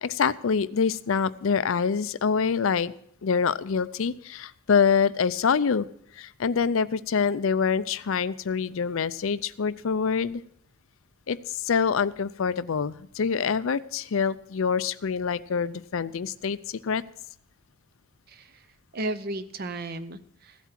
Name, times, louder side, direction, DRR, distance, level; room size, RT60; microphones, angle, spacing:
voice 1, 0.0-2.9 3.2-5.9 6.1-10.4 11.3-17.0, left 6 dB, 70° left, 16 dB, 0.5 m, -25 dB
voice 2, 18.3-18.6 18.9-20.6, right 2 dB, 45° right, 12 dB, 0.7 m, -34 dB
15.5 x 8.3 x 5.9 m, 0.69 s
head